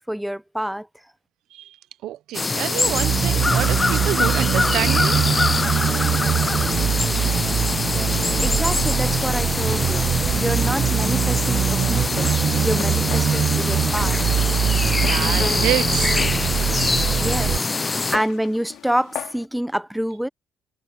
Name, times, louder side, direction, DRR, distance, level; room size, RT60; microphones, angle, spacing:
voice 1, 0.1-0.9 8.4-14.2 17.2-20.3, equal, 5° right, 0.7 m, -27 dB
voice 2, 2.0-5.2 5.7-5.9 14.9-16.3 16.8-17.0, right 14 dB, 85° right, 0.6 m, -28 dB
sound 1, 2.3-18.2, left 3 dB, 25° left, 0.4 m, -24 dB
sound 2, 2.8-17.6, right 9 dB, 60° right, 0.9 m, -23 dB
Walk footsteps, 11.6-19.5, left 12 dB, 85° left, 2.9 m, -40 dB
cardioid pair, 90°, 0 cm